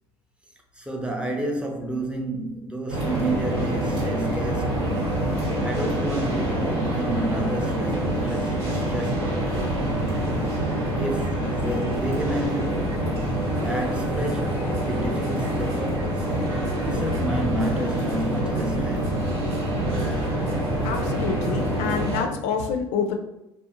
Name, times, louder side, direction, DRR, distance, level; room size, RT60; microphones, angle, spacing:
voice 1, 0.7-5.0 5.4-9.4 11.0-13.1 13.6-16.4 16.8-19.2, right 1 dB, 10° right, 0.5 m, -31 dB
sound 1, 2.9-22.2, right 1 dB, 85° right, 1.1 m, -26 dB
voice 2, 20.8-23.2, left 6 dB, 60° left, 0.4 m, -27 dB
2.4 x 2.1 x 2.7 m
hypercardioid pair, 70°, 14 cm